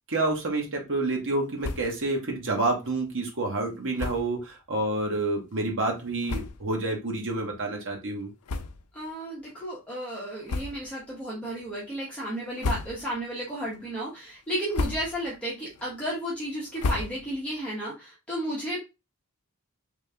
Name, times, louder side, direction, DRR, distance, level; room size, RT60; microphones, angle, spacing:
voice 1, 0.1-8.3, right 2 dB, 60° right, 1 dB, 1.3 m, -28 dB
sound 1, 1.6-2.1 2.4-2.5 2.8-2.9 3.9-4.4 5.1-5.2 5.9-6.0 6.2-6.8 7.3-7.5 8.4-9.1 9.4-9.6 10.4-11.0 11.5-11.9 12.4-13.3 13.7-14.1 14.5-15.3 15.7-17.5, left 3 dB, 85° left, 0.5 m, -34 dB
voice 2, 8.9-18.8, right 1 dB, 5° left, -6 dB, 1.1 m, -33 dB
3.7 x 3.1 x 3.4 m, 0.26 s
head